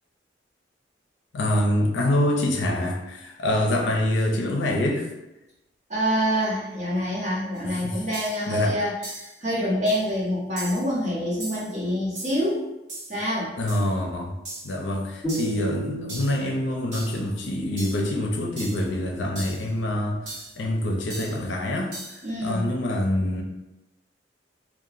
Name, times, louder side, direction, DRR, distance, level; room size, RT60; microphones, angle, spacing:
voice 1, 1.3-5.1 7.6-8.0 8.5-8.8 13.6-14.3 14.6-21.9 22.4-23.4, left 1 dB, 80° left, 0 dB, 0.5 m, -25 dB
voice 2, 5.9-12.7 13.1-13.5 22.2-22.7, equal, 40° right, -7 dB, 0.9 m, -26 dB
sound 1, 7.5-7.6 8.1-8.5 9.0-9.4 9.9-10.1 10.6-10.9 11.4-11.7 12.2-12.5 12.9-13.2 13.7-13.9 14.5-14.8 15.3-15.6 16.1-16.4 16.9-17.2 17.8-18.1 18.6-18.9 19.4-19.7 20.3-20.6 21.1-21.4 21.9-22.3, right 1 dB, 65° right, 0.9 m, -38 dB
sound 2, 15.2-18.4, equal, 15° right, 1.3 m, -34 dB
2.9 x 2.1 x 2.5 m, 0.95 s
head